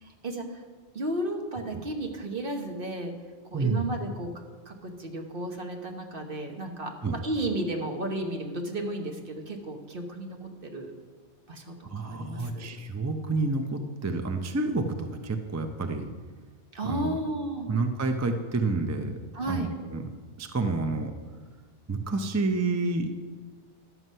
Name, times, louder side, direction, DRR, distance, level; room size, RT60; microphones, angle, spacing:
voice 1, 0.0-0.6 0.9-3.2 3.5-10.9 11.5-12.8 16.7-17.7 19.3-19.7, right 1 dB, 50° right, 3 dB, 1.3 m, -33 dB
voice 2, 3.5-3.8 7.0-7.2 11.9-16.1 16.8-17.2 17.7-19.1 19.5-20.1 20.4-21.1 21.9-23.1, right 3 dB, 20° right, 6 dB, 0.4 m, -29 dB
11.0 x 7.8 x 5.5 m, 1.5 s
omnidirectional pair, 1.2 m